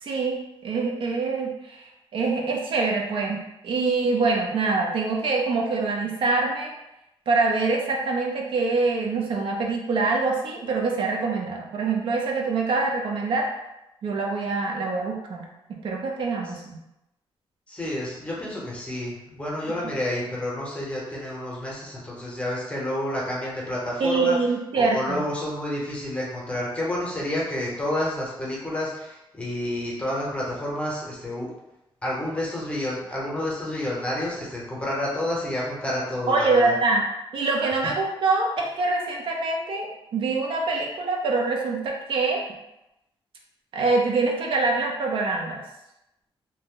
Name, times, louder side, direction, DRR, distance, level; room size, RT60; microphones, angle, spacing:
voice 1, 0.0-6.7 7.3-13.5 14.0-15.5 15.8-16.8 24.0-25.3 36.3-37.0 37.3-39.9 40.1-42.4 43.7-45.6, right 3 dB, 65° right, 0 dB, 0.5 m, -24 dB
voice 2, 17.7-24.4 24.7-31.5 32.0-36.7, left 1 dB, 10° left, -5 dB, 0.7 m, -29 dB
2.7 x 2.0 x 3.6 m, 0.90 s
wide cardioid pair, 170°, 10 cm